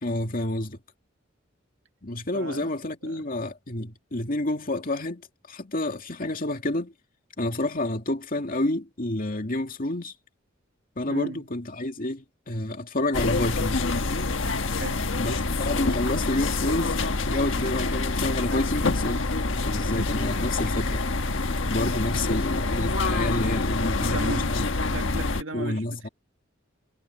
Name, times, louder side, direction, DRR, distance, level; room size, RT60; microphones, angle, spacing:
voice 1, 0.0-0.8 2.0-6.9 7.4-10.1 11.0-13.8 15.2-17.0 17.2-19.3 19.6-21.0 21.7-24.7 25.5-26.1, left 1 dB, 45° left, 2.4 m, -29 dB
voice 2, 2.3-2.7 3.0-3.3 11.1-11.5 14.8-15.1 24.0-24.5 24.9-26.1, right 2 dB, 75° right, 1.8 m, -36 dB
sound 1, 13.1-25.4, left 3 dB, 70° left, 1.4 m, -26 dB
head